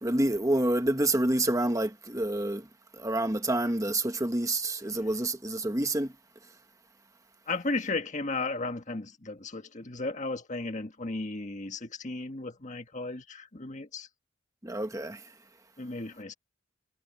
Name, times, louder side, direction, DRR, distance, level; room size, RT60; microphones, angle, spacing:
voice 1, 0.0-2.6 3.0-6.1 14.6-15.2, right 1 dB, 15° right, 1.3 m, -28 dB
voice 2, 7.5-14.1 15.8-16.3, left 3 dB, 40° left, 1.6 m, -35 dB
head